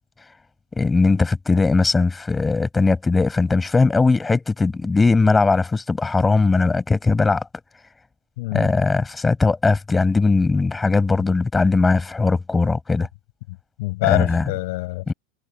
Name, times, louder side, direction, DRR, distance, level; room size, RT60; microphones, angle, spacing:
voice 1, 0.8-7.5 8.5-13.1 14.0-14.5 15.1-15.2, left 3 dB, 10° left, 6.9 m, -19 dB
voice 2, 8.4-8.7 13.5-15.1, left 22 dB, 60° left, 6.6 m, -25 dB
supercardioid pair, 155°, 0 cm